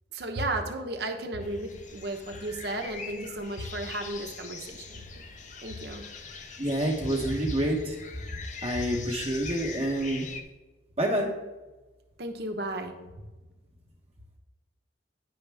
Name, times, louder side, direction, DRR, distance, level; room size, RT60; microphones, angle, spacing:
voice 1, 0.1-5.2 5.6-6.0 12.2-12.9, right 1 dB, 60° right, 4 dB, 0.9 m, -34 dB
sound 1, 1.4-10.4, left 5 dB, 40° left, 0.6 m, -43 dB
voice 2, 6.6-8.0 8.6-10.2 11.0-11.3, right 1 dB, 35° right, -2 dB, 1.1 m, -27 dB
9.5 x 5.8 x 3.4 m, 1.2 s
head